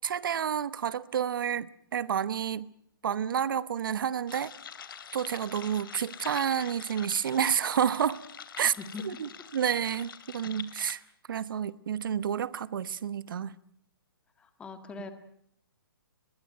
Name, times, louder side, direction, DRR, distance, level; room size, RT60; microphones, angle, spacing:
voice 1, 0.0-2.7 3.0-4.5 5.1-8.2 8.6-8.7 9.0-11.0 11.3-13.5, right 8 dB, 60° right, 1.0 m, -30 dB
sound 1, 4.3-10.9, left 7 dB, 60° left, 2.7 m, -45 dB
voice 2, 14.4-15.1, left 5 dB, 10° left, 1.7 m, -41 dB
22.5 x 21.5 x 9.2 m
hypercardioid pair, 165°, 13 cm